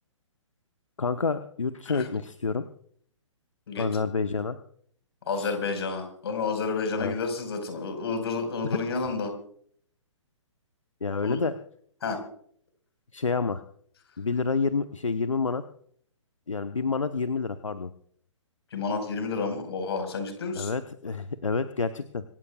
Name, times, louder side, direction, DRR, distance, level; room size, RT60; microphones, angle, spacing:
voice 1, 1.0-2.7 3.8-4.6 5.4-5.5 7.0-7.1 8.6-8.8 11.0-11.5 13.1-13.6 14.2-15.6 16.5-17.9 20.5-22.2, left 4 dB, 75° left, 10 dB, 0.9 m, -28 dB
voice 2, 5.3-9.3 11.2-11.4 12.0-12.2 18.7-20.7, left 4 dB, 55° left, 5 dB, 4.7 m, -30 dB
25.5 x 15.0 x 2.3 m, 0.62 s
figure-of-eight pair, 130°, 16 cm